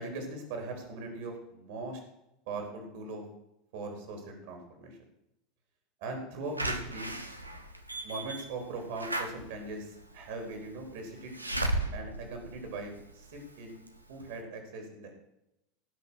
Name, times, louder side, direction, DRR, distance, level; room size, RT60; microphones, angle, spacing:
voice 1, 0.0-2.0 2.5-3.2 3.7-5.0 6.0-7.1 8.0-11.4 11.9-13.8 14.1-15.1, right 3 dB, 55° right, 3 dB, 4.1 m, -40 dB
Slam / Alarm, 6.6-13.4 13.9-14.0 14.2-14.3, right 1 dB, 85° right, 1.0 m, -36 dB
17.5 x 6.0 x 6.4 m, 0.87 s
figure-of-eight pair, 80°, 0 cm